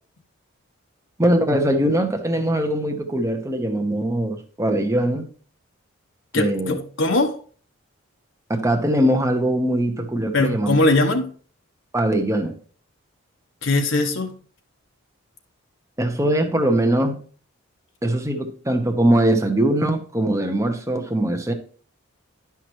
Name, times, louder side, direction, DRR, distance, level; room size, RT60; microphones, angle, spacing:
voice 1, 1.2-5.3 6.3-6.7 8.5-10.7 11.9-12.5 16.0-17.1 18.0-21.5, right 1 dB, 15° right, 1.0 m, -21 dB
voice 2, 6.3-7.4 10.3-11.3 13.6-14.3, left 2 dB, 60° left, 1.0 m, -20 dB
10.5 x 5.9 x 3.1 m
head